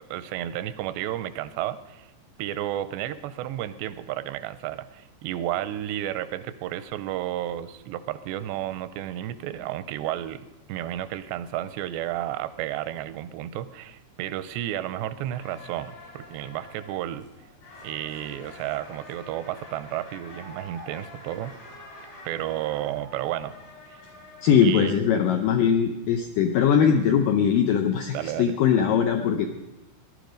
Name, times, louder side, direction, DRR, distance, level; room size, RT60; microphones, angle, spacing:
voice 1, 0.0-2.1 2.4-17.3 17.8-21.6 22.3-23.5 23.9-24.0 24.6-25.0 28.1-28.6, right 12 dB, 85° right, 13 dB, 2.8 m, -32 dB
sound 1, 15.3-24.9, left 1 dB, 65° left, 5.8 m, -46 dB
voice 2, 24.4-29.5, left 7 dB, 80° left, 5 dB, 1.9 m, -21 dB
18.0 x 11.5 x 5.2 m, 1.0 s
omnidirectional pair, 4.9 m